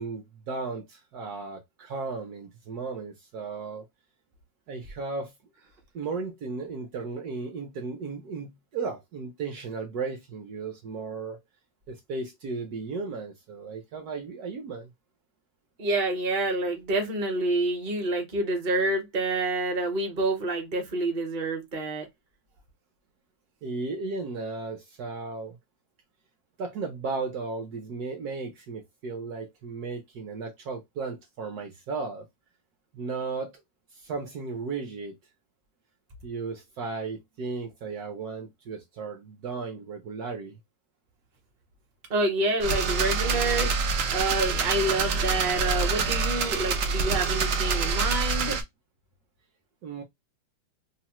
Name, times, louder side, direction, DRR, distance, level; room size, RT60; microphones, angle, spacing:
voice 1, 0.0-3.9 4.7-5.3 5.9-11.4 11.9-14.9 23.6-25.6 26.6-32.3 32.9-33.6 33.9-35.1 36.2-40.6 49.8-50.0, right 4 dB, 65° right, 1.0 m, -35 dB
voice 2, 15.8-22.1 42.1-43.9 44.1-48.6, right 2 dB, 40° right, 0.7 m, -28 dB
sound 1, 42.6-48.6, right 4 dB, 90° right, 0.7 m, -26 dB
3.0 x 2.0 x 2.9 m
omnidirectional pair, 2.0 m